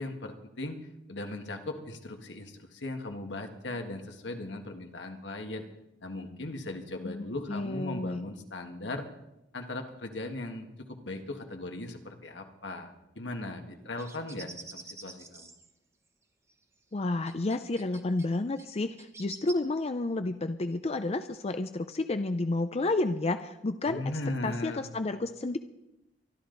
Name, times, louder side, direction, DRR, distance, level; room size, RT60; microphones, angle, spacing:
voice 1, 0.0-5.6 6.0-9.1 9.5-15.5 23.9-24.8, left 2 dB, 80° left, 5 dB, 1.7 m, -38 dB
voice 2, 7.0-8.2 16.9-24.0 24.4-25.6, left 2 dB, 35° left, 9 dB, 0.5 m, -31 dB
sound 1, 14.0-15.7 16.5-16.6 17.2-18.3 18.6-19.5, right 3 dB, 15° right, 1.1 m, -47 dB
24.0 x 12.0 x 4.0 m, 0.91 s
head